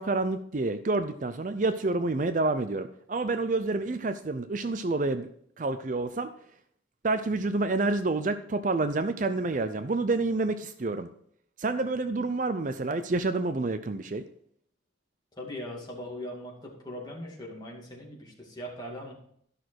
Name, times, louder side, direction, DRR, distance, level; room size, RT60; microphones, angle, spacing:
voice 1, 0.0-5.3 5.6-6.3 7.0-11.1 11.6-14.3, right 3 dB, 45° right, 10 dB, 0.5 m, -28 dB
voice 2, 15.4-19.1, left 1 dB, 20° left, -2 dB, 2.5 m, -40 dB
12.5 x 6.1 x 4.7 m, 0.66 s
head